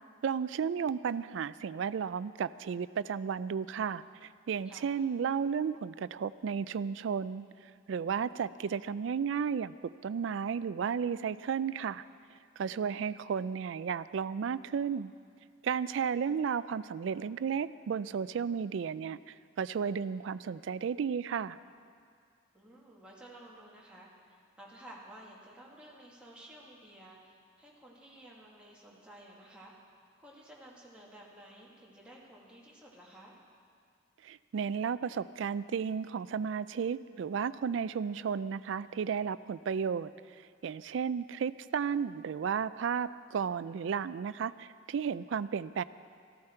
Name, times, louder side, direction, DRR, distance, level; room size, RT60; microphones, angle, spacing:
voice 1, 0.2-12.0 12.6-15.1 15.6-21.6 34.2-40.1 40.6-45.8, right 6 dB, 65° right, 16 dB, 0.3 m, -33 dB
voice 2, 22.5-29.7 30.2-33.4, right 1 dB, 5° right, -5 dB, 1.9 m, -53 dB
14.5 x 13.5 x 4.4 m, 2.2 s
head